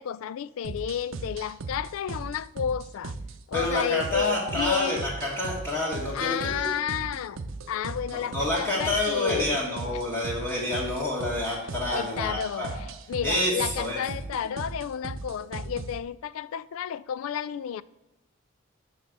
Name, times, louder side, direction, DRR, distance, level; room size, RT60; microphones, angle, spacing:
voice 1, 0.0-3.1 3.5-5.0 6.1-7.4 7.7-9.8 11.9-12.7 13.1-17.8, left 8 dB, 85° left, 0.3 m, -31 dB
sound 1, 0.6-16.0, right 3 dB, 80° right, 0.6 m, -38 dB
voice 2, 3.5-6.7 8.1-12.7 13.2-14.0, left 1 dB, 10° left, 1.7 m, -28 dB
8.1 x 3.9 x 6.0 m
head